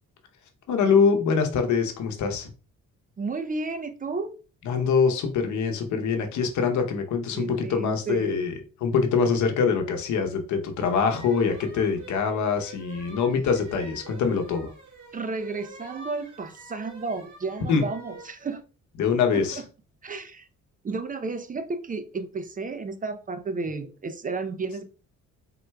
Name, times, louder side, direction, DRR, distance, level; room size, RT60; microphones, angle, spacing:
voice 1, 0.7-2.5 4.6-8.5 8.8-14.7 17.7-17.8 19.0-19.6, left 5 dB, 70° left, 0.9 m, -24 dB
voice 2, 3.2-4.3 7.3-8.5 15.1-18.6 19.3-19.6 20.0-20.5 20.8-24.8, right 3 dB, 30° right, 0.5 m, -32 dB
sound 1, 10.8-18.3, right 2 dB, 85° right, 1.6 m, -47 dB
4.3 x 3.7 x 2.3 m
cardioid pair, 90°, 30 cm